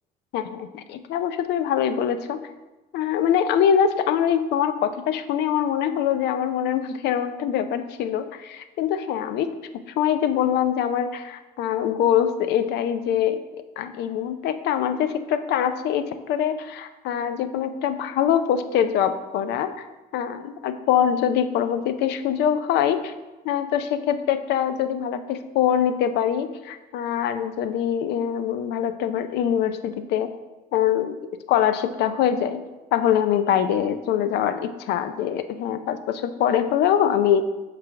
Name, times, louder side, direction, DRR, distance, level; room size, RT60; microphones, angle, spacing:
voice 1, 0.3-2.4 2.9-9.5 10.0-13.4 13.8-19.7 20.1-23.1 23.4-30.3 30.7-32.6 32.9-37.5, left 9 dB, 80° left, 10 dB, 0.5 m, -23 dB
5.9 x 3.3 x 5.7 m, 1.1 s
cardioid pair, 110°, 17 cm